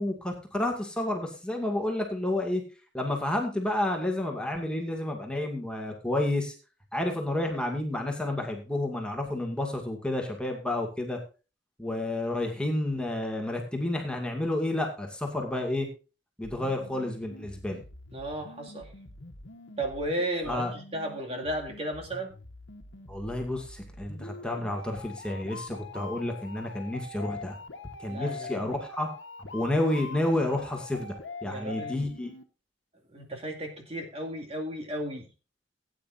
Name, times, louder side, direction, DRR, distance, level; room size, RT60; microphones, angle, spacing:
voice 1, 0.0-2.6 2.9-6.5 6.9-11.2 11.8-15.9 16.4-17.8 20.5-20.7 23.1-27.6 28.0-29.1 29.4-31.1 31.4-32.3, left 1 dB, 5° left, 2 dB, 2.2 m, -30 dB
sound 1, 16.4-32.4, left 3 dB, 80° left, 1.3 m, -44 dB
voice 2, 18.1-18.9 19.8-22.3 28.1-28.5 31.5-32.0 33.1-35.3, right 1 dB, 35° right, 2 dB, 2.4 m, -34 dB
17.5 x 9.4 x 2.6 m, 0.32 s
head